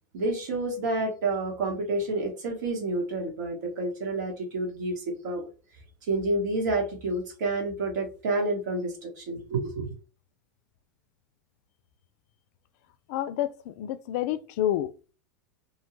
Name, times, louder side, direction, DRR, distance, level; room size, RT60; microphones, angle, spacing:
voice 1, 0.1-5.5 6.1-9.9, right 2 dB, 75° right, 1.2 m, -29 dB
voice 2, 13.1-15.1, left 12 dB, 60° left, 0.3 m, -29 dB
2.7 x 2.2 x 3.0 m
hypercardioid pair, 110°, 10 cm